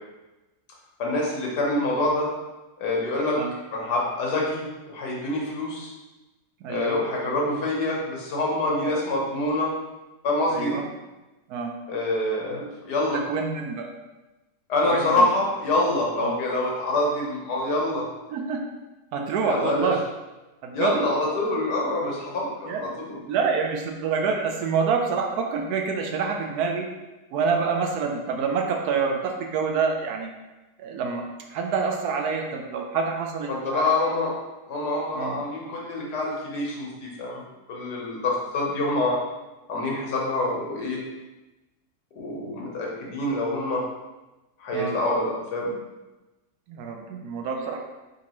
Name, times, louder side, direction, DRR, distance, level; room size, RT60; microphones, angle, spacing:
voice 1, 1.0-2.3 2.8-3.4 3.7-5.9 6.7-9.7 10.2-10.8 11.9-13.2 14.7-18.1 19.4-19.9 20.7-23.2 33.5-34.3 34.7-37.4 37.7-39.2 39.7-41.0 42.2-43.8 44.6-45.7, left 2 dB, 80° left, -2 dB, 1.5 m, -26 dB
voice 2, 6.6-7.0 8.8-8.9 10.5-10.8 11.5-11.7 13.1-13.9 14.9-15.3 16.2-16.4 18.3-18.6 19.1-20.0 20.6-21.1 22.7-26.9 27.3-30.3 30.8-31.2 31.5-33.9 35.1-35.4 44.7-45.0 46.7-47.8, right 5 dB, 75° right, 2 dB, 1.0 m, -27 dB
5.1 x 2.7 x 2.9 m, 1.1 s
omnidirectional pair, 1.8 m